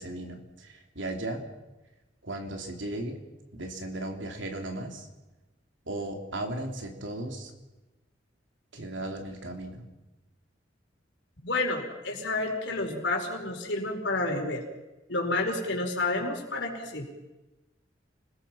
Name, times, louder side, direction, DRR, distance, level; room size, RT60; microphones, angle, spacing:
voice 1, 0.0-1.5 2.2-3.2 3.5-5.1 5.9-7.5 8.7-9.8, right 1 dB, 80° right, 3 dB, 3.6 m, -36 dB
voice 2, 11.4-14.6 15.1-17.0, left 2 dB, 70° left, 2 dB, 4.9 m, -30 dB
29.5 x 20.5 x 5.9 m, 1.1 s
head